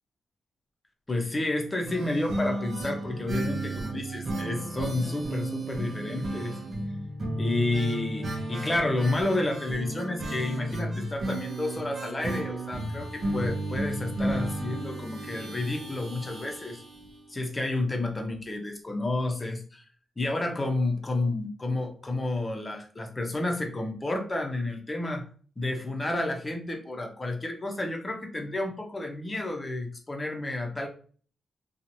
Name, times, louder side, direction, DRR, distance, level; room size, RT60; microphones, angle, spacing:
voice 1, 1.1-6.6 7.4-16.8 17.3-19.8 20.2-25.2 25.6-30.9, left 2 dB, 25° left, 3 dB, 0.7 m, -30 dB
sound 1, 1.9-17.5 17.8-17.9 18.2-18.3, right 1 dB, 55° right, 0.8 m, -33 dB
2.9 x 2.4 x 2.7 m, 0.43 s
cardioid pair, 80°, 0 cm